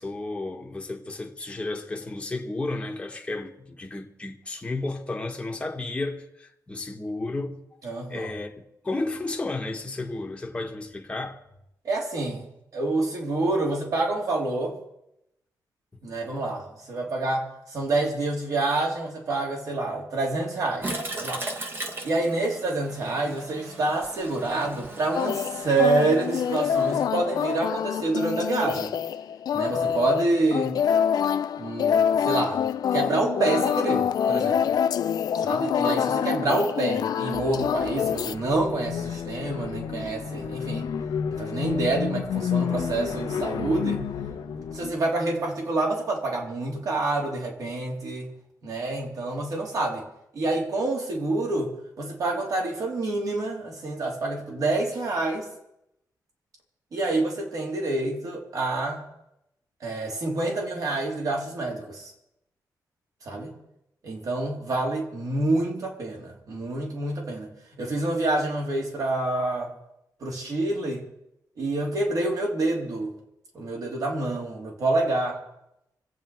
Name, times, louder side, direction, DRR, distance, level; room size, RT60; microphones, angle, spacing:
voice 1, 0.0-7.6 8.1-11.4, left 2 dB, 15° left, 1.4 m, -33 dB
voice 2, 7.8-8.3 11.8-14.8 16.0-20.9 21.2-21.4 22.0-28.9 29.5-30.8 31.6-32.6 32.9-34.7 35.4-40.9 41.3-44.0 44.7-48.3 48.6-50.0 50.3-55.4 56.9-59.0 59.8-62.1 63.3-63.5 64.0-69.7 70.2-71.0 71.6-73.1 73.5-75.4, right 2 dB, 55° right, 3.6 m, -27 dB
Toilet flush, 20.8-27.0, right 2 dB, 30° right, 1.6 m, -38 dB
sound 1, 25.1-38.3, left 8 dB, 65° left, 0.5 m, -26 dB
sound 2, 37.3-45.0, left 7 dB, 85° left, 1.0 m, -31 dB
25.5 x 8.7 x 4.7 m
wide cardioid pair, 145°, 7 cm